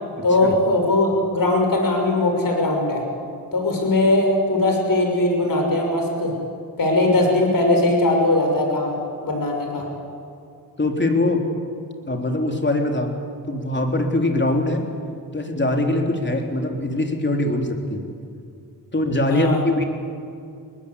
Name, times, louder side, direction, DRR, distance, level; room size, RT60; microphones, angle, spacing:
voice 1, 0.2-3.0 3.5-6.3 6.8-9.0 9.2-9.9 19.3-19.6, left 2 dB, 50° left, 2 dB, 6.6 m, -20 dB
voice 2, 10.8-11.4 12.1-13.1 13.5-14.8 15.3-18.0 18.9-19.8, left 2 dB, 25° left, 3 dB, 3.6 m, -22 dB
21.5 x 20.0 x 8.3 m, 2.4 s
cardioid pair, 55°, 42 cm